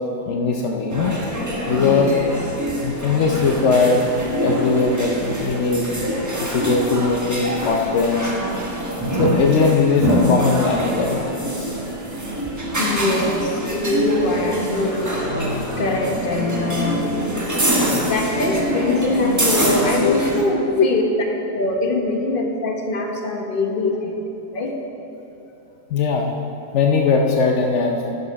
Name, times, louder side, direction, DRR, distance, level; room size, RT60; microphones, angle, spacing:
voice 1, 0.3-1.2 1.7-2.1 2.8-4.1 4.4-5.9 6.4-8.3 9.2-11.7 20.0-20.1 23.8-23.9 25.9-26.3 26.7-27.9, left 4 dB, 80° left, 2 dB, 0.6 m, -20 dB
sound 1, 0.9-20.4, right 1 dB, 15° right, 0.6 m, -24 dB
voice 2, 1.7-2.1 12.8-17.5 18.0-21.0 21.5-24.2 24.5-24.7, left 2 dB, 40° left, 2 dB, 0.8 m, -23 dB
10.5 x 6.8 x 5.3 m, 2.9 s
omnidirectional pair, 2.0 m